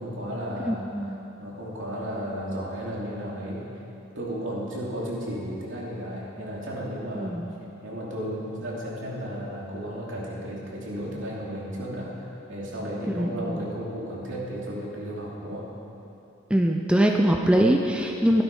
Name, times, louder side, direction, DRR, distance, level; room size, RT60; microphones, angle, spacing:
voice 1, 0.0-3.8 4.1-7.4 7.8-15.7, equal, 65° right, -5 dB, 2.8 m, -34 dB
voice 2, 0.6-1.2 7.1-7.5 13.1-13.6 16.5-18.4, right 1 dB, 5° right, 1 dB, 0.5 m, -22 dB
13.0 x 12.0 x 5.4 m, 2.9 s
head